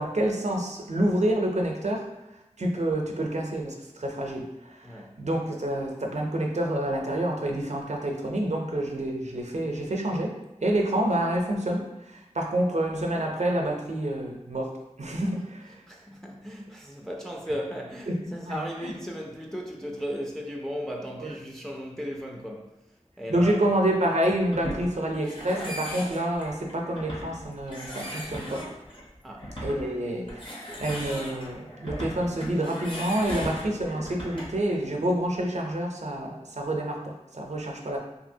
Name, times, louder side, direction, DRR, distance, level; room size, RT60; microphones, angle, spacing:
voice 1, 0.0-2.1 2.6-10.3 10.6-15.8 18.1-18.9 21.2-21.3 23.3-28.7 29.6-38.0, right 1 dB, 65° right, 1 dB, 0.5 m, -28 dB
voice 2, 4.8-5.1 15.9-22.8 23.2-23.6 29.2-29.5, equal, 5° left, 0 dB, 0.4 m, -36 dB
sound 1, 24.2-34.7, equal, 45° left, 0.8 m, -38 dB
2.8 x 2.7 x 2.6 m, 0.95 s
wide cardioid pair, 40°, 12 cm